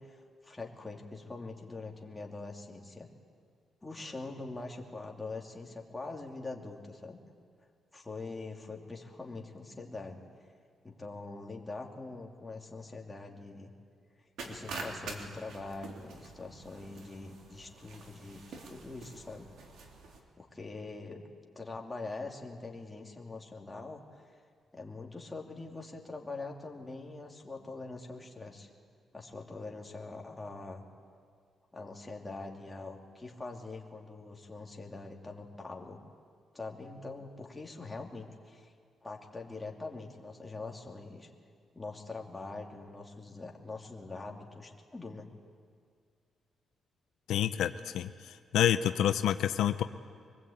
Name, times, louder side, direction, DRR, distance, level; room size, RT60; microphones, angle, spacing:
voice 1, 0.0-3.1 3.8-7.2 7.9-10.2 10.8-13.7 14.4-19.5 20.4-21.2 21.5-24.2 24.7-28.7 29.1-30.8 31.7-36.0 36.5-38.7 39.0-41.3 41.7-45.3, left 3 dB, 15° left, 0 dB, 2.7 m, -43 dB
sound 1, 14.4-20.2, right 3 dB, 75° right, 3.1 m, -46 dB
voice 2, 47.3-49.8, left 10 dB, 90° left, 9 dB, 0.7 m, -28 dB
24.0 x 20.5 x 8.7 m, 2.1 s
cardioid pair, 110°, 0 cm